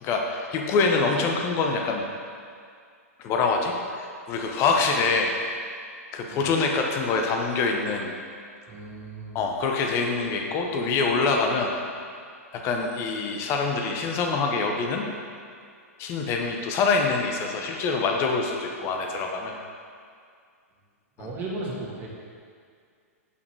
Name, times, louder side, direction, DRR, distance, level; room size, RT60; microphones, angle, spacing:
voice 1, 0.0-2.0 3.2-5.3 6.1-8.2 9.3-11.7 12.5-15.1 16.0-19.5 21.2-21.3, left 4 dB, 35° left, 2 dB, 1.0 m, -25 dB
voice 2, 8.7-9.4 21.2-22.1, right 2 dB, 25° right, -4 dB, 1.8 m, -35 dB
6.8 x 5.7 x 4.7 m, 2.2 s
figure-of-eight pair, 110°, 8 cm